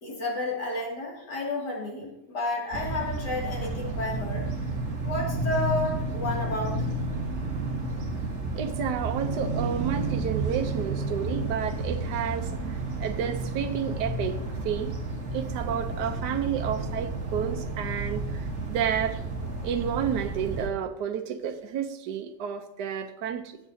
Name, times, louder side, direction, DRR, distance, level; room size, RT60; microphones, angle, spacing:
voice 1, 0.0-4.5 5.0-6.9, left 1 dB, 65° left, -2 dB, 2.9 m, -31 dB
sound 1, 2.7-20.7, right 2 dB, 40° right, 1.8 m, -31 dB
voice 2, 8.5-14.4 14.6-14.9 15.3-19.2 19.6-23.6, right 8 dB, 70° right, 6 dB, 1.3 m, -31 dB
16.5 x 7.3 x 2.8 m, 0.82 s
omnidirectional pair, 2.0 m